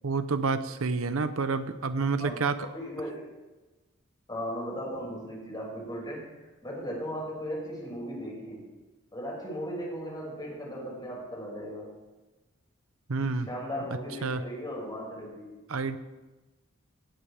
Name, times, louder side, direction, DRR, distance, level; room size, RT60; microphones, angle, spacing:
voice 1, 0.0-2.7 13.1-13.5 14.2-14.4 15.7-16.0, right 4 dB, 80° right, 11 dB, 0.8 m, -28 dB
voice 2, 2.2-3.2 4.3-8.7 9.1-11.9 13.2-15.7, equal, 20° left, -3 dB, 6.0 m, -37 dB
18.0 x 16.0 x 3.5 m, 1.1 s
head